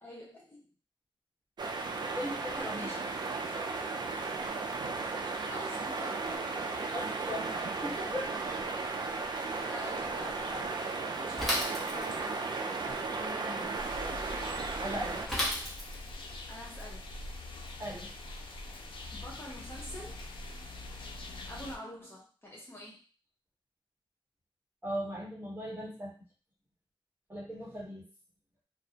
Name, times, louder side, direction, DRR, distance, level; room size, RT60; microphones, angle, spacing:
voice 1, 0.0-0.7 2.6-3.2 5.5-6.3 8.7-9.2 9.6-10.8 11.2-12.5 15.1-15.3 16.5-17.2 19.1-20.2 21.4-23.0, equal, 25° left, -4 dB, 0.7 m, -47 dB
sound 1, 1.6-15.3, right 3 dB, 55° right, 0.3 m, -35 dB
voice 2, 2.1-2.9 6.9-8.3 13.2-13.7 14.8-15.2 17.8-18.1 24.8-26.1 27.3-28.1, equal, 20° right, -5 dB, 1.0 m, -38 dB
Bicycle / Mechanisms, 11.4-12.4 15.3-16.2, left 1 dB, ahead, 0.9 m, -33 dB
sound 2, 13.7-21.8, left 2 dB, 70° left, 0.4 m, -43 dB
2.5 x 2.0 x 2.7 m, 0.37 s
wide cardioid pair, 135°, 9 cm